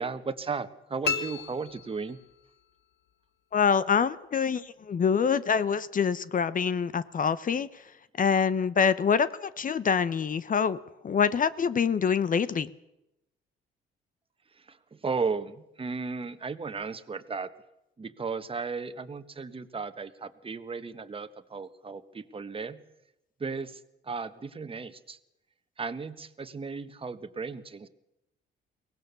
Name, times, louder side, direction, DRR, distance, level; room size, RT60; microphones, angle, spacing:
voice 1, 0.0-2.2 14.5-17.5 18.0-22.8 23.4-25.2 25.8-27.9, right 4 dB, 25° right, 9 dB, 1.4 m, -35 dB
sound 1, 1.0-2.6, left 6 dB, 60° left, 1.6 m, -33 dB
voice 2, 3.5-7.7 8.2-10.8 11.0-12.7, left 6 dB, 45° left, 16 dB, 0.9 m, -25 dB
23.0 x 18.5 x 6.9 m, 0.89 s
cardioid pair, 90°, 20 cm